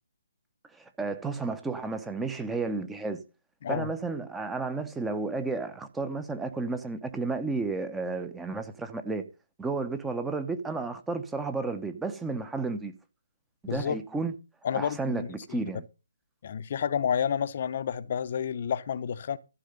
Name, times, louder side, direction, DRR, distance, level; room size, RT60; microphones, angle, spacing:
voice 1, 0.7-3.2 3.7-9.3 9.6-12.9 13.7-14.3 14.7-15.8, right 3 dB, 5° right, 1.0 m, -32 dB
voice 2, 13.7-14.0 14.6-15.6 16.4-19.4, left 8 dB, 45° left, 0.8 m, -30 dB
14.0 x 6.5 x 5.3 m
hypercardioid pair, 155°, 0 cm